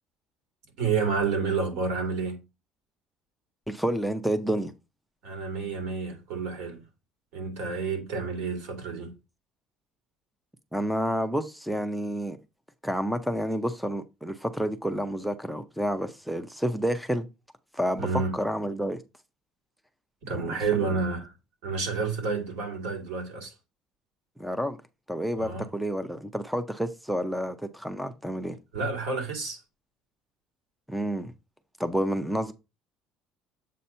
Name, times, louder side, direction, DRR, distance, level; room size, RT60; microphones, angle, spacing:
voice 1, 0.8-2.4 5.2-6.8 7.3-9.1 18.0-18.4 20.3-21.3 21.6-23.5 25.4-25.7 28.7-29.6, right 4 dB, 80° right, 2.7 m, -29 dB
voice 2, 3.7-4.7 10.7-12.4 12.8-17.3 17.7-18.1 18.3-19.0 20.5-20.9 24.4-24.8 25.1-28.6 30.9-31.3 31.8-32.5, equal, ahead, 0.4 m, -29 dB
7.4 x 2.8 x 5.5 m
cardioid pair, 170°, 0 cm